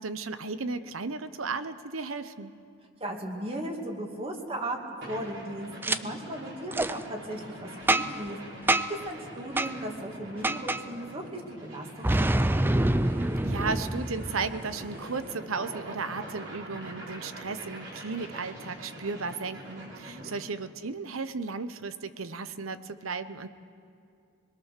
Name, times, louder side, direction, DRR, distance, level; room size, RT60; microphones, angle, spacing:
voice 1, 0.0-2.5 13.4-23.5, right 4 dB, 90° right, 12 dB, 0.9 m, -35 dB
voice 2, 3.0-8.4 8.9-12.5 20.0-20.3, right 1 dB, 30° right, 2 dB, 2.3 m, -37 dB
sound 1, 5.0-20.4, right 1 dB, 60° right, 4.9 m, -44 dB
Boom, 5.8-6.0 6.7-6.9 7.9-8.3 8.7-9.0 9.6-9.7 10.4-10.8 12.0-14.7, right 1 dB, 10° right, 0.4 m, -26 dB
26.0 x 21.0 x 6.7 m, 2.5 s
head